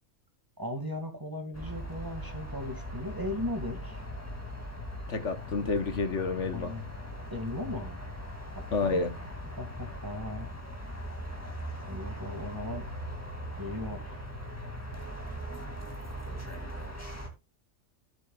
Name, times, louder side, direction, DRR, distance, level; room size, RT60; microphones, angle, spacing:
voice 1, 0.6-4.0 6.5-6.9 7.3-8.0 8.6-9.3 9.6-10.5 11.8-12.9 13.6-14.3, left 1 dB, 15° right, 2.1 m, -37 dB
sound 1, 1.5-17.3, equal, 10° left, 2.3 m, -40 dB
voice 2, 5.1-6.7 8.7-9.1, left 4 dB, 65° left, 1.3 m, -29 dB
14.0 x 7.5 x 2.3 m
omnidirectional pair, 1.4 m